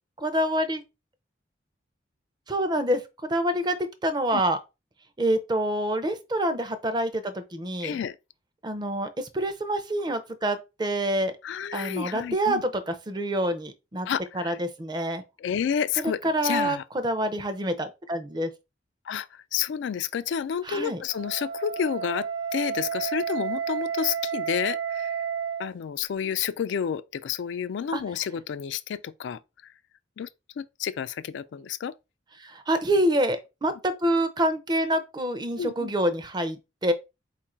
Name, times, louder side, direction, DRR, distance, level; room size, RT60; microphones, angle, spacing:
voice 1, 0.2-0.8 2.5-4.6 5.2-8.0 8.6-11.4 11.7-14.1 14.3-15.2 16.2-18.5 20.6-21.0 27.9-28.0 32.4-36.9, right 1 dB, 20° right, 0.5 m, -27 dB
voice 2, 7.8-8.2 11.4-12.6 14.1-14.6 15.4-16.8 19.1-19.3 19.5-22.3 22.5-25.1 25.6-29.4 30.2-30.3 30.6-31.9 35.6-35.9, left 8 dB, 65° left, 0.3 m, -30 dB
Wind instrument woodwind instrument, 21.0-25.7, right 7 dB, 80° right, 0.8 m, -31 dB
4.4 x 2.5 x 4.2 m
head